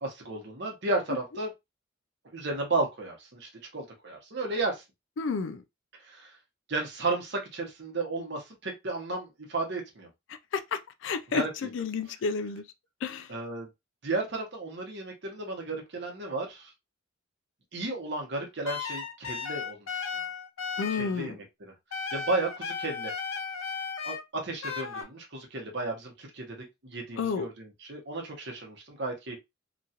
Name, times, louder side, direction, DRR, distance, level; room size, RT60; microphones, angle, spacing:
voice 1, 0.0-1.5 2.3-4.8 6.1-6.3 6.7-10.1 11.3-11.5 13.3-13.7 14.0-16.7 17.7-20.2 21.0-21.7 22.1-23.1 24.0-29.4, right 2 dB, 55° right, 0.9 m, -33 dB
voice 2, 5.2-5.6 10.3-12.7 13.0-13.3 20.8-21.4 27.1-27.5, left 5 dB, 65° left, 0.4 m, -31 dB
sound 1, 18.7-21.2 21.9-24.2 24.6-25.0, left 5 dB, 90° left, 0.7 m, -35 dB
3.0 x 2.4 x 2.8 m
head